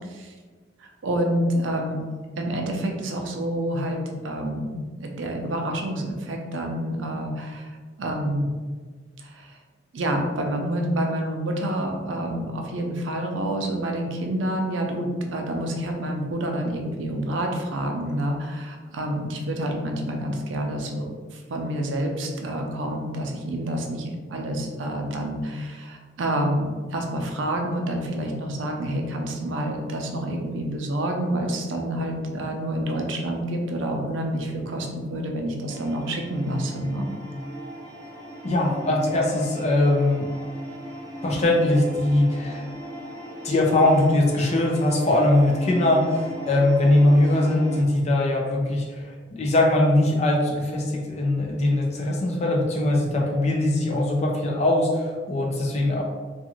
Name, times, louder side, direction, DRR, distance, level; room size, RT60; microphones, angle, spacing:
voice 1, 0.8-2.0 2.4-7.7 8.0-8.5 9.2-9.6 9.9-37.1, right 1 dB, 80° right, 2 dB, 0.5 m, -28 dB
sound 1, 35.7-47.8, equal, 20° right, 0.5 m, -37 dB
voice 2, 38.4-40.3 41.2-42.6 43.4-56.0, left 1 dB, 35° left, -1 dB, 0.4 m, -21 dB
2.4 x 2.4 x 2.9 m, 1.5 s
head